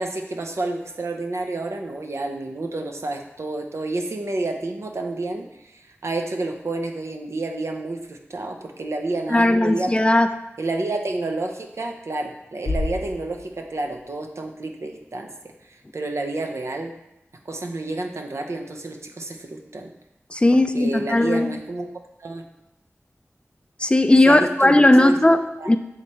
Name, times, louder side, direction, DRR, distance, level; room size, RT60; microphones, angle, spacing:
voice 1, 0.0-5.5 5.7-9.9 10.6-15.3 15.9-16.9 17.5-19.9 20.7-21.9 22.2-22.4 24.3-25.2 25.6-25.7, right 2 dB, 70° right, 4 dB, 0.7 m, -29 dB
voice 2, 9.3-10.3 20.3-21.6 23.8-25.8, left 1 dB, 20° left, 9 dB, 0.3 m, -17 dB
Bass drum, 12.7-14.3, left 2 dB, 80° left, 0.6 m, -31 dB
7.1 x 3.2 x 4.2 m, 0.86 s
wide cardioid pair, 75°, 5 cm